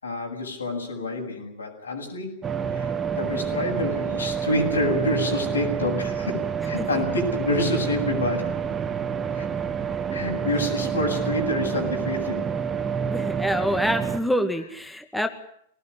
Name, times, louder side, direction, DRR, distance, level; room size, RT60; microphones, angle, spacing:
voice 1, 0.0-2.4 2.8-8.6 9.3-9.5 10.1-12.5, left 1 dB, 80° left, 2 dB, 7.9 m, -28 dB
sound 1, 2.4-14.2, right 7 dB, 20° right, 1.9 m, -28 dB
voice 2, 13.1-15.3, equal, ahead, 6 dB, 2.1 m, -26 dB
23.0 x 19.0 x 9.9 m, 0.67 s
figure-of-eight pair, 95°, 0 cm